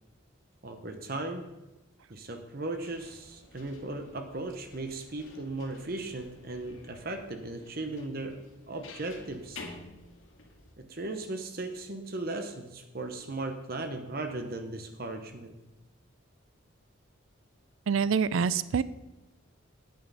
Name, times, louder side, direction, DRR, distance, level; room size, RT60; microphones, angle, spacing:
voice 1, 0.6-1.5 2.1-9.6 10.8-15.6, right 2 dB, 45° right, 6 dB, 0.9 m, -37 dB
sound 1, 2.8-10.7, left 3 dB, 75° left, 2.0 m, -51 dB
voice 2, 17.9-18.8, right 6 dB, 75° right, 16 dB, 0.4 m, -26 dB
9.6 x 9.3 x 5.5 m, 1.0 s
head